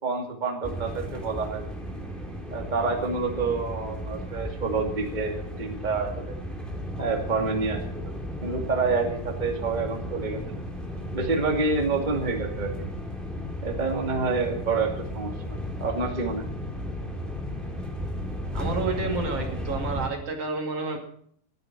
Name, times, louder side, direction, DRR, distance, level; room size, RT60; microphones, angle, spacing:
voice 1, 0.0-1.6 2.5-6.3 7.0-8.0 8.4-10.4 11.1-12.9 13.6-14.9 15.1-16.5, right 4 dB, 75° right, 2 dB, 0.4 m, -28 dB
sound 1, 0.6-20.1, equal, ahead, 1.4 m, -34 dB
voice 2, 18.5-21.0, right 3 dB, 45° right, 3 dB, 2.3 m, -30 dB
15.0 x 12.0 x 6.1 m, 0.62 s
omnidirectional pair, 5.7 m